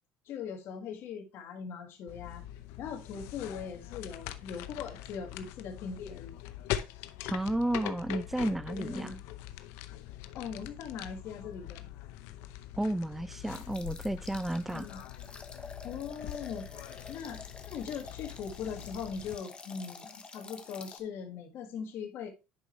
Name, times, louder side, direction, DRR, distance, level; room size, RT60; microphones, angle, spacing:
voice 1, 0.2-2.4 2.8-6.3 8.8-9.2 10.3-11.8 14.7-15.0 15.8-16.7 17.1-17.4 17.6-22.3, left 6 dB, 60° left, 1.7 m, -40 dB
Bag Sealing Machine, 2.1-19.4, left 13 dB, 80° left, 0.7 m, -43 dB
voice 2, 7.3-9.1 12.8-14.9, right 1 dB, 5° right, 0.4 m, -32 dB
sound 1, 13.5-21.0, left 4 dB, 20° left, 1.1 m, -49 dB
10.5 x 5.0 x 3.0 m
supercardioid pair, 110°, 5 cm